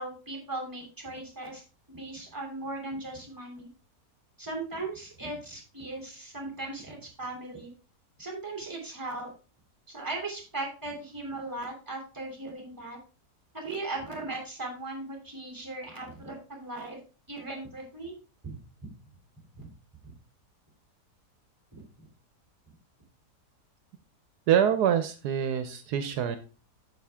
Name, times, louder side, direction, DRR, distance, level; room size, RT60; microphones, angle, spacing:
voice 1, 0.0-3.7 4.4-7.7 8.2-9.3 9.9-13.0 13.5-17.0 17.3-18.1 18.4-18.6 19.5-19.7 21.7-21.8, right 2 dB, 10° right, 0 dB, 2.9 m, -38 dB
voice 2, 24.5-26.4, right 9 dB, 80° right, 10 dB, 1.3 m, -25 dB
9.3 x 6.7 x 3.5 m, 0.35 s
omnidirectional pair, 1.7 m